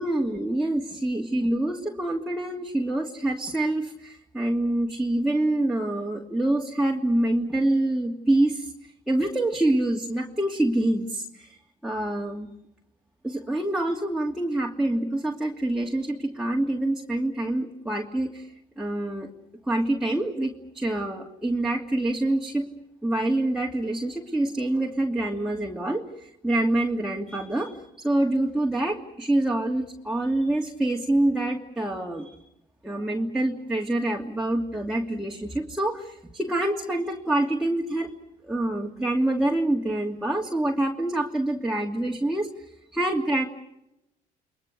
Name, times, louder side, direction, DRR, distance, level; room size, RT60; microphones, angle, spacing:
voice 1, 0.0-8.7 9.1-11.6 11.8-12.5 13.2-19.3 19.7-22.7 23.0-27.7 28.0-32.3 32.8-38.1 38.5-42.5 42.9-43.5, right 1 dB, 5° right, -1 dB, 2.6 m, -26 dB
30.0 x 22.0 x 6.5 m, 0.84 s
cardioid pair, 110°, 17 cm